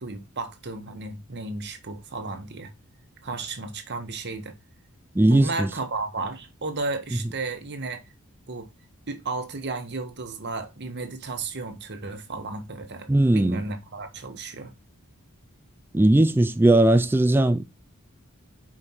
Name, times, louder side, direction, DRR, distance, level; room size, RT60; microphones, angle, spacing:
voice 1, 0.0-2.7 3.2-4.5 5.3-8.0 8.5-8.7 9.1-14.7, right 3 dB, 50° right, 1.2 m, -33 dB
voice 2, 5.2-5.7 13.1-13.6 15.9-17.6, right 1 dB, 10° right, 0.3 m, -18 dB
4.9 x 4.5 x 5.5 m
head